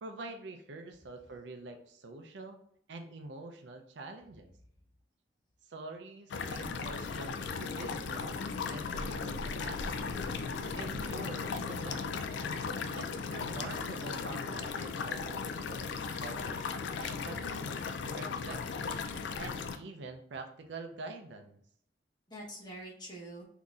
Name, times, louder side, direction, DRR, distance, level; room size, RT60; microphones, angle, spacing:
voice 1, 0.0-2.6 2.9-4.5 5.7-8.3 8.7-10.2 10.6-12.1 12.9-16.6 17.0-17.7 18.1-19.0 19.4-21.6, right 3 dB, 80° right, 5 dB, 0.5 m, -46 dB
sound 1, 6.3-19.8, left 5 dB, 80° left, 0.3 m, -37 dB
voice 2, 22.3-23.4, right 1 dB, 25° left, -4 dB, 0.9 m, -49 dB
3.9 x 2.7 x 2.4 m, 0.65 s
head